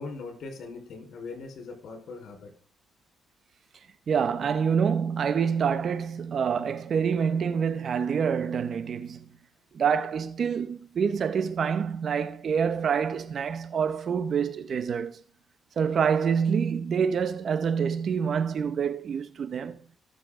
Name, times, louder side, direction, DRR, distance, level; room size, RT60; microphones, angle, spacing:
voice 1, 0.0-2.5, left 3 dB, 70° left, 4.4 m, -40 dB
voice 2, 4.1-9.3 9.7-15.2 15.8-19.8, right 6 dB, 55° right, 0.9 m, -26 dB
18.0 x 7.4 x 3.8 m
cardioid pair, 90°, 0 cm